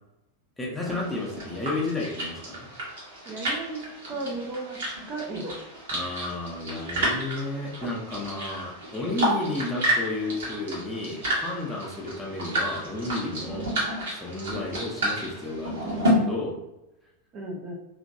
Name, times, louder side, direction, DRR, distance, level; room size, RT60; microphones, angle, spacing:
voice 1, 0.6-2.7 5.9-13.7 14.1-16.6, left 2 dB, 10° left, -3 dB, 0.7 m, -32 dB
sound 1, 0.8-16.1, right 1 dB, 60° right, 1.1 m, -31 dB
voice 2, 3.3-5.6 17.3-17.8, right 2 dB, 35° right, 0 dB, 0.5 m, -35 dB
2.9 x 2.6 x 2.6 m, 0.95 s
figure-of-eight pair, 90°, 0 cm